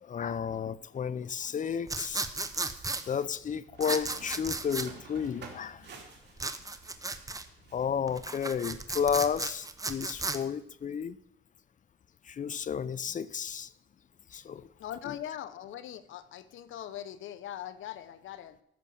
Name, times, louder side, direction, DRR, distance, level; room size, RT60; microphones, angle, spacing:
voice 1, 0.0-2.3 3.1-6.0 7.7-11.2 12.3-13.7 14.3-14.7, left 7 dB, 40° left, 0.7 m, -32 dB
sound 1, 1.9-3.0 3.8-4.9 6.4-7.4 8.1-10.4, right 3 dB, 15° right, 1.0 m, -34 dB
sound 2, 1.9-9.0, right 5 dB, 60° right, 3.0 m, -52 dB
voice 2, 14.8-18.6, left 11 dB, 80° left, 0.9 m, -41 dB
14.0 x 6.2 x 7.0 m
cardioid pair, 90°, 20 cm